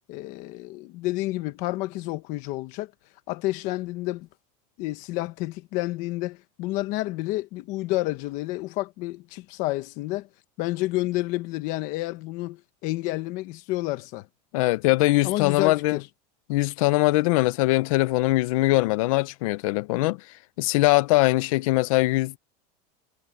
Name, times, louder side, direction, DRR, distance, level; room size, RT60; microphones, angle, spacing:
voice 1, 0.1-2.9 3.3-4.3 4.8-10.3 10.6-14.3 15.2-16.1, left 18 dB, 40° left, 1.2 m, -30 dB
voice 2, 14.5-16.0 16.5-20.2 20.6-22.4, left 20 dB, 55° left, 0.7 m, -22 dB
supercardioid pair, 180°, 21 cm